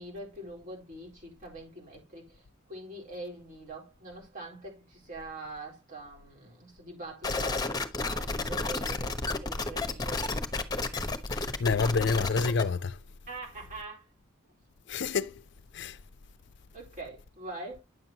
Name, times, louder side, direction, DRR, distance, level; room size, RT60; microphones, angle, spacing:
voice 1, 0.0-2.4 2.7-10.2 13.3-14.1 16.7-17.8, right 2 dB, 40° right, 4.2 m, -43 dB
sound 1, 7.2-12.6, left 3 dB, 20° left, 1.0 m, -31 dB
voice 2, 11.3-12.9 14.9-15.3 15.7-15.9, left 4 dB, 60° left, 0.5 m, -28 dB
9.8 x 7.4 x 2.8 m
head